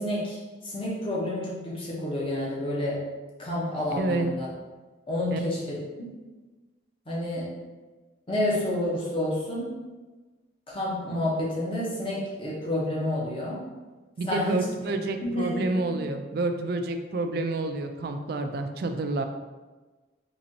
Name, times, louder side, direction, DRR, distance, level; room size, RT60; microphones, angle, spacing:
voice 1, 0.0-3.0 3.4-4.5 5.1-6.2 7.1-7.6 8.3-9.8 10.7-13.7 14.2-15.7, left 1 dB, 30° left, -5 dB, 0.8 m, -29 dB
voice 2, 3.9-4.3 5.3-5.4 14.2-19.2, right 2 dB, 55° right, 6 dB, 0.3 m, -29 dB
4.0 x 3.0 x 2.7 m, 1.3 s
head